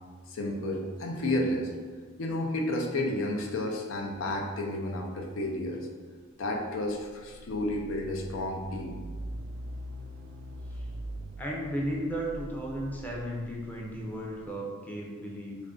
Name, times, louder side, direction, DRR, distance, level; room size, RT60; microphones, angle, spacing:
voice 1, 0.3-1.7 2.2-5.9 6.4-9.0, left 1 dB, 80° left, 1 dB, 0.5 m, -31 dB
sound 1, 7.0-14.5, right 1 dB, 65° right, 0.4 m, -42 dB
voice 2, 11.4-15.6, equal, 10° left, -3 dB, 0.5 m, -35 dB
3.2 x 2.5 x 3.7 m, 1.5 s
head